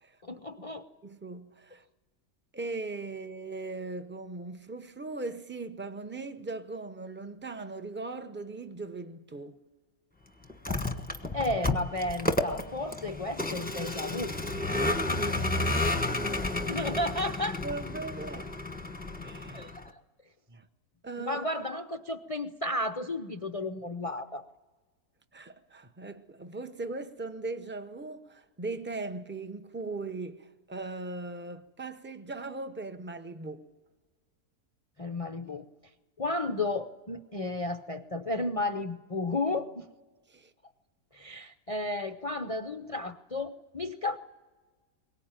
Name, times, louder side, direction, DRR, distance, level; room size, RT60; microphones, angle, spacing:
voice 1, 0.2-0.9 11.3-14.3 16.7-17.6 19.5-20.0 21.3-24.4 35.0-35.7 36.2-39.9 41.1-44.2, left 2 dB, 50° left, 0.4 m, -33 dB
voice 2, 1.0-1.8 2.5-9.6 15.0-15.9 16.8-16.9 17.6-18.5 19.2-19.7 20.5-20.6 21.0-21.4 25.3-33.6 40.3-40.5, right 3 dB, 10° right, 0.6 m, -39 dB
Vehicle, 10.5-19.9, left 2 dB, 5° left, 1.1 m, -31 dB
23.0 x 18.5 x 9.0 m
omnidirectional pair, 1.6 m